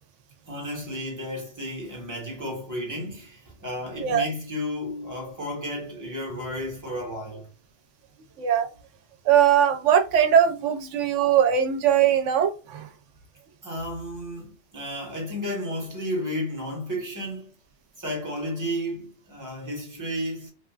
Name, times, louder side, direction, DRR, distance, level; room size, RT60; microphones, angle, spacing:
voice 1, 0.5-7.5 13.6-17.5 18.0-20.5, equal, 15° right, 1.1 m, -32 dB
voice 2, 9.2-12.9, right 9 dB, 90° right, 0.9 m, -20 dB
3.2 x 2.4 x 2.3 m
omnidirectional pair, 1.2 m